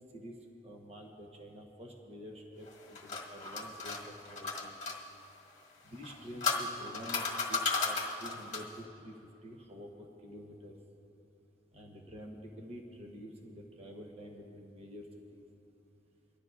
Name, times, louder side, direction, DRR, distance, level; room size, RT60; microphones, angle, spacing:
voice 1, 0.6-4.7 5.8-10.7 11.7-15.1 15.3-15.4, equal, 35° right, 1 dB, 1.1 m, -48 dB
sound 1, 2.7-5.0 5.9-8.8, left 4 dB, 40° left, 1.5 m, -35 dB
23.5 x 12.5 x 2.6 m, 2.9 s
head